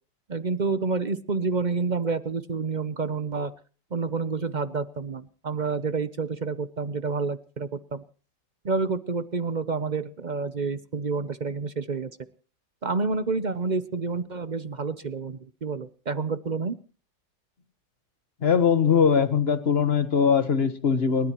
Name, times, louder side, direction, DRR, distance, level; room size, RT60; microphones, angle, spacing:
voice 1, 0.3-3.5 3.9-8.0 8.6-12.1 12.8-16.8, right 4 dB, 50° right, 12 dB, 0.5 m, -29 dB
voice 2, 18.4-21.3, left 6 dB, 40° left, 10 dB, 1.4 m, -21 dB
30.0 x 13.0 x 3.0 m, 0.40 s
omnidirectional pair, 1.9 m